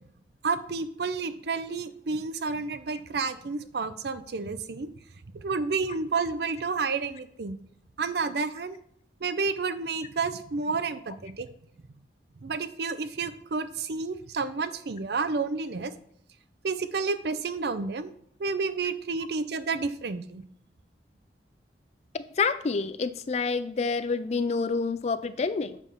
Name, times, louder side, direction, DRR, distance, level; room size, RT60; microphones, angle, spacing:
voice 1, 0.4-4.9 5.3-7.6 8.0-8.8 9.2-11.5 12.4-15.9 16.6-18.1 18.4-20.4, right 4 dB, 65° right, 12 dB, 0.5 m, -30 dB
voice 2, 22.4-25.8, left 4 dB, 35° left, 12 dB, 0.3 m, -28 dB
7.3 x 3.5 x 5.5 m, 0.67 s
head